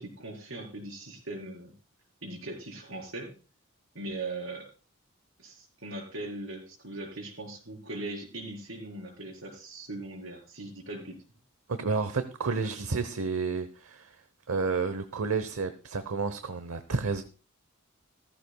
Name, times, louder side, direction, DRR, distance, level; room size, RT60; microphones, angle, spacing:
voice 1, 0.0-1.7 2.2-3.3 3.9-4.7 5.4-11.2 12.6-12.7, right 2 dB, 65° right, 2 dB, 4.4 m, -40 dB
voice 2, 11.7-14.2 14.5-17.2, right 4 dB, 80° right, 11 dB, 0.9 m, -30 dB
15.5 x 14.0 x 2.3 m, 0.34 s
head